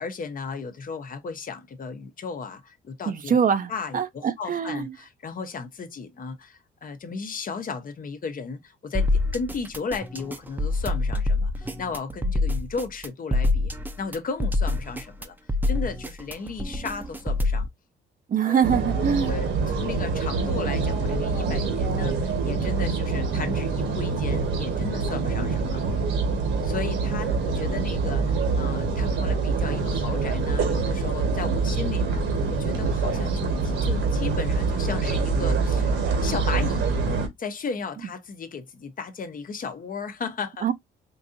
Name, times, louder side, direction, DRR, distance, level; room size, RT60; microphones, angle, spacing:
voice 1, 0.0-3.4 3.7-13.7 14.0-15.3 15.7-17.7 18.4-18.7 19.3-25.8 26.6-37.0 37.4-40.7, left 5 dB, 45° left, 0.8 m, -35 dB
voice 2, 3.1-4.9 18.3-19.3 40.6-40.7, right 7 dB, 45° right, 0.6 m, -24 dB
sound 1, 8.9-17.7, left 2 dB, 10° right, 0.6 m, -26 dB
sound 2, 18.6-37.3, right 4 dB, 70° right, 1.4 m, -25 dB
4.6 x 2.6 x 2.5 m
cardioid pair, 90°, 20 cm